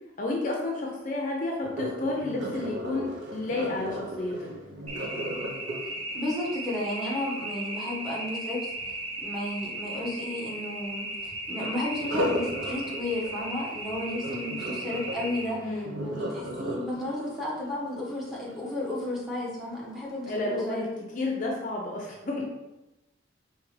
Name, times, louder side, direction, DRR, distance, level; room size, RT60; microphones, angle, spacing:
voice 1, 0.2-4.5 15.6-15.9 20.3-22.4, left 2 dB, 45° left, 0 dB, 0.5 m, -31 dB
Sink (filling or washing), 1.6-7.6 11.9-19.0 19.5-19.8 20.3-20.4, equal, 75° right, 0.9 m, -36 dB
sound 1, 4.9-15.5, right 1 dB, 30° right, 0.5 m, -36 dB
voice 2, 6.1-15.7 16.0-20.9, left 1 dB, ahead, -5 dB, 1.0 m, -33 dB
4.7 x 2.8 x 3.2 m, 1.0 s
head